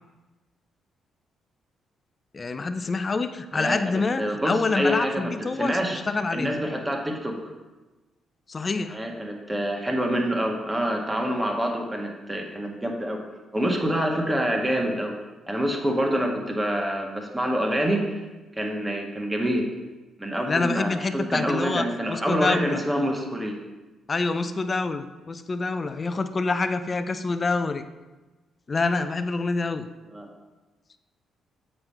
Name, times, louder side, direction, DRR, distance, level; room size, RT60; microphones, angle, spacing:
voice 1, 2.3-6.6 8.5-9.0 20.5-22.8 24.1-27.8 28.7-29.8, left 3 dB, 40° left, 10 dB, 0.6 m, -27 dB
voice 2, 3.5-6.0 6.3-7.5 8.9-13.2 13.5-15.2 15.5-18.2 18.6-19.7 20.2-23.6 30.1-30.3, equal, 15° right, 1 dB, 1.6 m, -26 dB
7.7 x 5.5 x 4.4 m, 1.2 s
hypercardioid pair, 45°, 0 cm